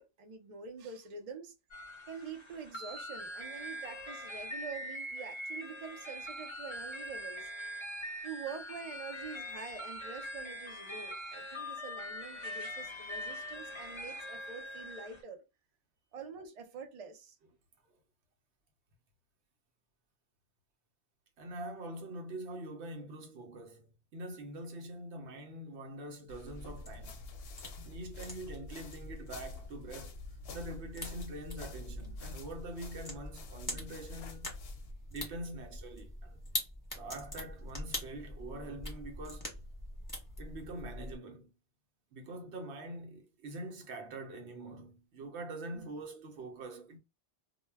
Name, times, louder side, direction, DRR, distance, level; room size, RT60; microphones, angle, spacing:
voice 1, 0.0-1.5 2.1-7.5 8.2-15.4 16.1-17.4 45.7-45.9, right 5 dB, 50° right, 0.5 m, -46 dB
sound 1, 1.7-15.2, equal, 50° left, 0.3 m, -43 dB
voice 2, 21.4-27.3 27.8-30.2 30.5-34.6 35.1-36.4 36.9-39.5 40.4-41.5 42.1-47.0, right 1 dB, 75° right, 0.9 m, -44 dB
sound 2, 26.3-34.9, left 3 dB, 65° left, 0.7 m, -47 dB
sound 3, 26.4-41.2, left 1 dB, 20° left, 0.8 m, -44 dB
2.1 x 2.1 x 3.3 m
omnidirectional pair, 1.1 m